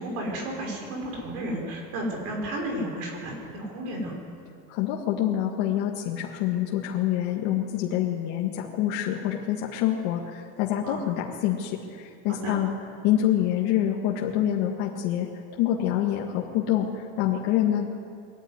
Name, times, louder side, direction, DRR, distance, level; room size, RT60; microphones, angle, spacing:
voice 1, 0.0-4.2 10.8-11.1 12.3-12.6, right 1 dB, 60° right, 1 dB, 5.7 m, -33 dB
voice 2, 4.7-12.7 13.0-15.3 15.5-17.9, left 11 dB, 65° left, -1 dB, 2.0 m, -26 dB
21.5 x 14.5 x 9.8 m, 2.5 s
cardioid pair, 170°, 33 cm